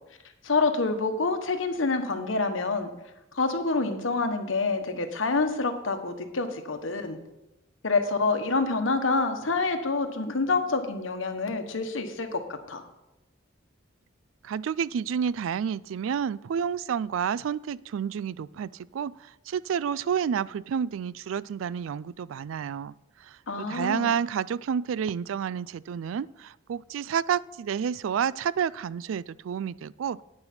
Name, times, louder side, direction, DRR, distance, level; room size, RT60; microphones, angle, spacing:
voice 1, 0.4-2.9 3.3-7.2 7.8-12.8 23.5-24.1, left 3 dB, 85° left, 7 dB, 1.2 m, -27 dB
voice 2, 14.4-19.1 19.5-22.9 23.6-30.2, right 7 dB, 90° right, 20 dB, 0.3 m, -29 dB
9.8 x 9.6 x 4.3 m, 0.97 s
head